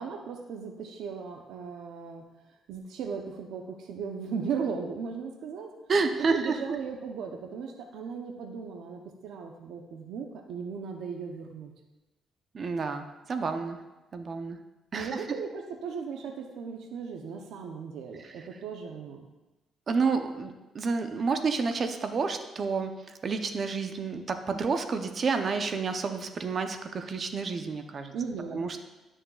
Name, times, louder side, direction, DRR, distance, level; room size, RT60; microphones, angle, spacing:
voice 1, 0.0-2.2 2.7-5.7 6.2-11.7 14.9-19.3 28.1-28.6, right 6 dB, 80° right, 3 dB, 0.7 m, -37 dB
voice 2, 5.9-6.5 12.5-13.8 14.1-14.6 14.9-15.2 19.9-22.9 23.2-28.1 28.5-28.9, right 4 dB, 45° right, 7 dB, 0.7 m, -29 dB
12.0 x 6.3 x 2.4 m, 1.1 s
cardioid pair, 90°, 0 cm